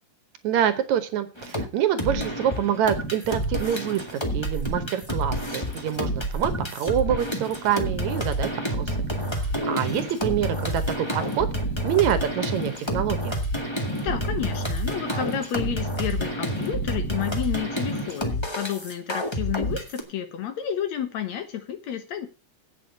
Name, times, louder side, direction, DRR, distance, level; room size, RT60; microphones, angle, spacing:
voice 1, 0.4-4.0 4.3-9.0 9.2-11.5 11.8-13.4, right 9 dB, 70° right, 10 dB, 2.2 m, -26 dB
sound 1, 1.4-1.6 2.0-20.0, equal, 15° left, 1.2 m, -29 dB
voice 2, 14.0-22.3, left 9 dB, 65° left, 8 dB, 2.3 m, -31 dB
8.5 x 7.1 x 7.9 m, 0.33 s
omnidirectional pair, 3.6 m